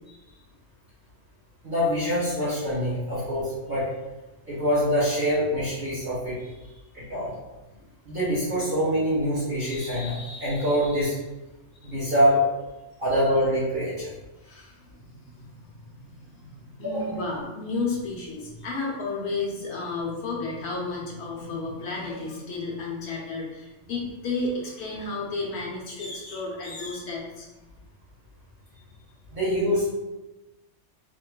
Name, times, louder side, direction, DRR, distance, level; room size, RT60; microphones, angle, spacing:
voice 1, 1.6-3.8 4.5-6.3 6.9-7.3 8.0-11.1 11.8-12.4 13.0-14.1 16.8-17.2 29.3-29.9, equal, 50° right, -10 dB, 1.6 m, -25 dB
voice 2, 14.4-27.5, left 3 dB, 60° left, -3 dB, 1.0 m, -33 dB
3.1 x 3.1 x 2.2 m, 1.1 s
omnidirectional pair, 1.3 m